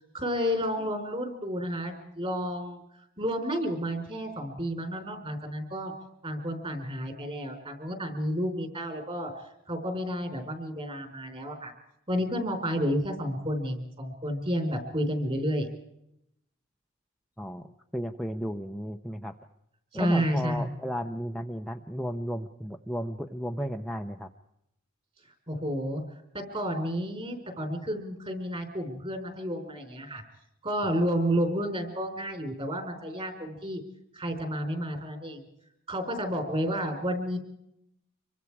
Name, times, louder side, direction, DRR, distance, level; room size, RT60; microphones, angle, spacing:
voice 1, 0.1-2.8 3.2-5.9 6.2-9.3 9.7-11.7 12.1-15.7 19.9-20.7 25.5-26.0 26.3-30.2 30.6-33.8 34.1-35.4 35.9-37.4, equal, 30° right, 6 dB, 4.3 m, -31 dB
voice 2, 17.4-17.7 17.9-19.4 19.9-24.3 30.8-30.9, equal, ahead, 3 dB, 0.8 m, -34 dB
26.0 x 23.5 x 4.8 m, 0.80 s
head